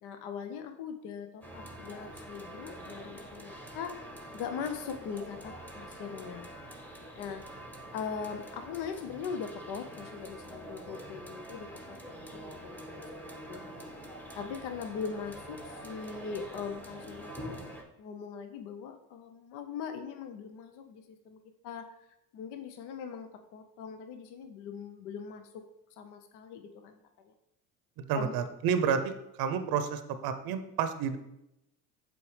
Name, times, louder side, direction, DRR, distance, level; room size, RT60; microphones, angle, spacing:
voice 1, 0.0-3.9 4.3-6.5 7.2-7.4 7.9-13.0 13.5-13.6 14.3-17.6 18.0-21.8 22.3-25.6 26.0-27.0 27.2-27.3 28.1-28.3, left 6 dB, 65° left, 7 dB, 0.7 m, -40 dB
sound 1, 1.4-17.8, right 1 dB, 5° left, 1.0 m, -46 dB
voice 2, 28.0-29.1 29.4-31.2, right 7 dB, 55° right, 10 dB, 0.7 m, -30 dB
6.9 x 4.2 x 3.2 m, 0.86 s
hypercardioid pair, 75°, 44 cm